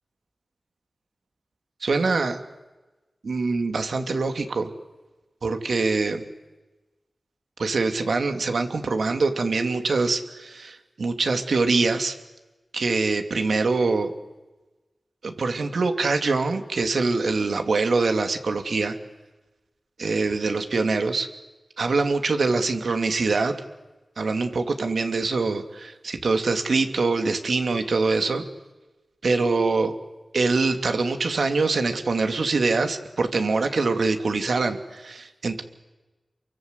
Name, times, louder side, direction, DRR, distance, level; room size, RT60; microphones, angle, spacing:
voice 1, 1.8-2.4 3.2-4.7 5.4-6.2 7.6-12.1 12.7-14.1 15.2-19.0 20.0-21.3 21.8-23.6 24.2-28.4 29.2-29.9 30.3-35.6, right 3 dB, 80° right, 7 dB, 2.6 m, -24 dB
29.5 x 23.5 x 8.2 m, 1.1 s
wide cardioid pair, 80°, 0 cm